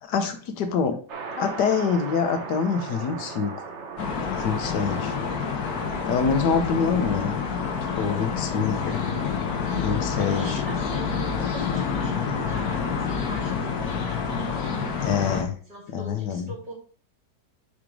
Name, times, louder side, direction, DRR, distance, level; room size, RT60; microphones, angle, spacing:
voice 1, 0.0-1.0 1.4-3.5 4.4-5.1 6.1-7.4 8.0-9.0 9.7-10.5 15.0-15.6 15.9-16.5, left 6 dB, 80° left, 7 dB, 1.4 m, -25 dB
sound 1, 1.1-15.0, right 4 dB, 50° right, 1.2 m, -41 dB
sound 2, 4.0-15.4, left 6 dB, 65° left, 1.5 m, -28 dB
voice 2, 4.6-5.1 8.2-9.1 10.0-14.7 14.9-16.7, equal, 25° right, -4 dB, 3.3 m, -43 dB
5.4 x 5.0 x 4.6 m, 0.41 s
omnidirectional pair, 1.8 m